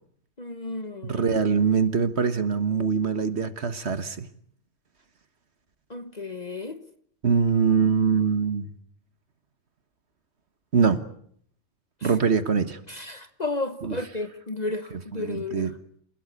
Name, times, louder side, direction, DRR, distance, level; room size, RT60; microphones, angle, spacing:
voice 1, 0.4-1.2 5.9-6.8 12.0-12.1 12.9-15.7, left 2 dB, 30° left, 1.1 m, -33 dB
voice 2, 1.0-4.2 7.2-8.7 10.7-11.0 12.0-12.8 13.8-14.0 15.2-15.7, right 5 dB, 50° right, 1.5 m, -23 dB
28.0 x 17.0 x 8.4 m
omnidirectional pair, 1.5 m